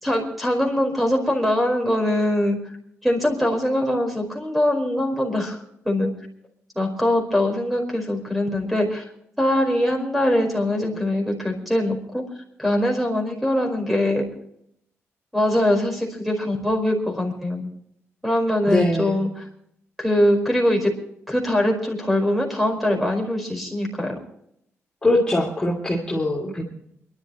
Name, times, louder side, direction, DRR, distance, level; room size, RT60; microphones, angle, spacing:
voice 1, 0.0-2.6 3.0-5.6 5.8-6.1 6.7-9.0 9.4-12.2 12.6-14.2 15.3-17.7 18.2-19.3 20.0-20.9 21.3-24.2, left 1 dB, ahead, 2 dB, 4.9 m, -22 dB
voice 2, 18.7-19.2 25.0-26.6, left 1 dB, 15° left, -3 dB, 3.0 m, -22 dB
28.5 x 12.0 x 3.1 m, 0.72 s
wide cardioid pair, 135°, 5 cm